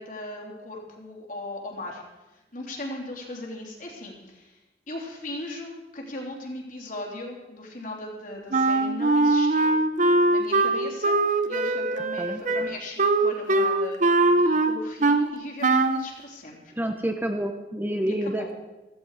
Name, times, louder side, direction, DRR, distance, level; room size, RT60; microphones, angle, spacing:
voice 1, 0.0-2.0 2.3-4.6 4.9-9.8 10.3-16.7 18.0-18.5, left 2 dB, 50° left, -1 dB, 3.4 m, -38 dB
Wind instrument woodwind instrument, 8.5-15.3 15.6-16.1, right 2 dB, 45° right, 0.8 m, -22 dB
voice 2, 16.7-18.5, right 1 dB, 10° right, 5 dB, 0.9 m, -28 dB
16.0 x 15.0 x 4.9 m, 1.1 s
head